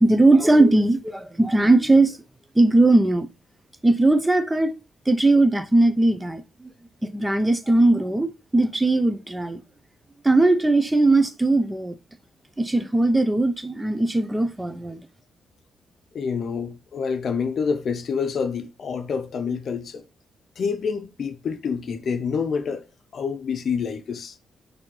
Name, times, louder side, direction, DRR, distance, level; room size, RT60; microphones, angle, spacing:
voice 1, 0.0-2.2 2.6-3.3 3.8-4.7 5.1-6.4 7.0-9.6 10.2-12.0 12.6-15.0, right 2 dB, 15° right, 0.6 m, -19 dB
voice 2, 16.1-20.0 20.6-22.8 23.1-24.4, left 6 dB, 60° left, 0.6 m, -27 dB
4.3 x 2.8 x 3.8 m
cardioid pair, 80°, 0 cm